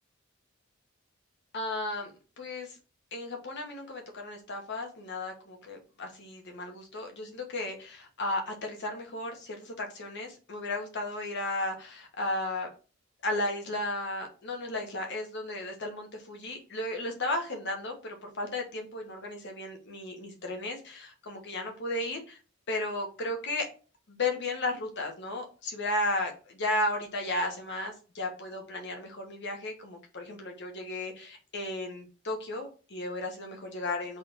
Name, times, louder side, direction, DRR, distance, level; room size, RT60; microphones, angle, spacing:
voice 1, 1.5-2.1 2.4-2.8 3.1-12.7 13.2-22.4 22.7-23.7 24.1-34.2, left 2 dB, 60° left, 3 dB, 1.1 m, -34 dB
3.7 x 3.3 x 4.0 m, 0.36 s
head